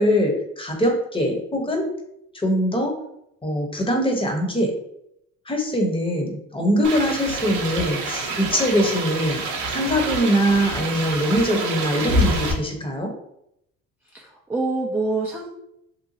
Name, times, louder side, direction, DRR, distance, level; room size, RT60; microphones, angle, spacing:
voice 1, 0.0-1.9 2.3-2.9 3.4-4.7 5.5-9.4 9.7-13.1, equal, 15° left, 1 dB, 0.8 m, -22 dB
sound 1, 6.8-12.5, right 2 dB, 55° right, 0.8 m, -27 dB
voice 2, 14.1-15.5, right 3 dB, 5° right, -1 dB, 0.4 m, -26 dB
2.9 x 2.1 x 2.7 m, 0.77 s
hypercardioid pair, 70°, 36 cm